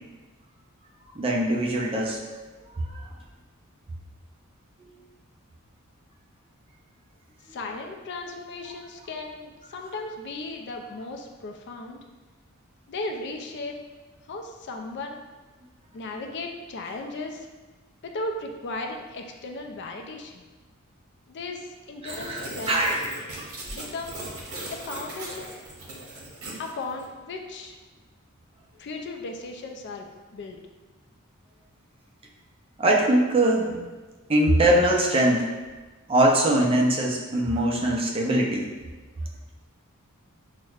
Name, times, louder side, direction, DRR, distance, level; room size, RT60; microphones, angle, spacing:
voice 1, 1.2-2.2 22.0-23.0 23.3-23.4 32.8-33.8 34.3-35.5 36.1-38.7, right 1 dB, 25° right, -2 dB, 0.4 m, -22 dB
voice 2, 7.5-12.0 12.9-13.8 14.3-15.2 15.9-17.5 18.0-20.5 21.3-22.8 23.7-24.3 24.7-25.5 26.6-27.8 28.8-30.6, left 2 dB, 50° left, 3 dB, 0.3 m, -36 dB
sound 1, 22.1-27.1, right 1 dB, 65° right, 0.9 m, -38 dB
5.9 x 2.1 x 2.3 m, 1.2 s
head